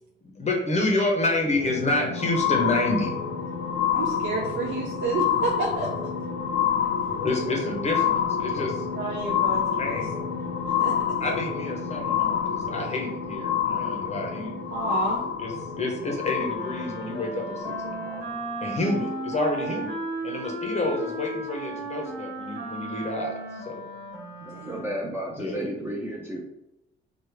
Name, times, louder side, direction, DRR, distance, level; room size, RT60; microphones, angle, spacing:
voice 1, 0.2-3.2 7.2-8.9 9.8-10.1 11.2-14.6 15.4-15.5 15.8-18.2 18.6-20.0 20.2-23.9 25.4-25.6, left 2 dB, 35° left, 1 dB, 0.6 m, -28 dB
sound 1, 1.5-18.3 19.1-19.2, left 8 dB, 75° left, 0.5 m, -28 dB
voice 2, 3.9-5.9 8.9-10.1 10.8-11.2 14.7-15.3 24.5-24.8, right 4 dB, 70° right, -2 dB, 0.5 m, -30 dB
Wind instrument woodwind instrument, 16.5-25.1, right 2 dB, 85° right, 1.2 m, -35 dB
voice 3, 24.4-26.4, right 1 dB, 10° right, -3 dB, 0.5 m, -33 dB
3.2 x 2.1 x 3.2 m, 0.86 s
cardioid pair, 90°, 20 cm